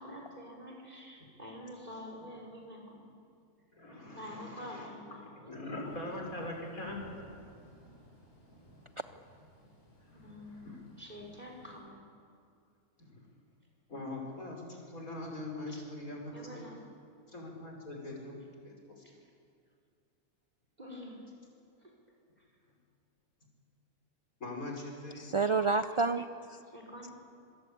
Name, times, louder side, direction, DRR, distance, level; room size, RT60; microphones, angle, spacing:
voice 1, 0.0-3.1 4.1-6.0 10.1-12.0 15.7-15.8 16.3-16.8 19.0-19.1 20.8-21.2 25.4-25.5 26.7-27.1, left 1 dB, 30° right, 0 dB, 5.6 m, -47 dB
voice 2, 3.7-4.9 5.4-7.0 10.1-10.8 13.0-13.2 13.9-16.7 17.3-19.0 24.4-25.3, left 2 dB, 70° left, 0 dB, 5.9 m, -42 dB
Thunder / Rain, 5.8-11.8, equal, 45° left, 7.6 m, -58 dB
voice 3, 25.2-26.6, right 4 dB, 45° right, 9 dB, 0.4 m, -29 dB
26.5 x 23.0 x 8.6 m, 2.3 s
omnidirectional pair, 1.5 m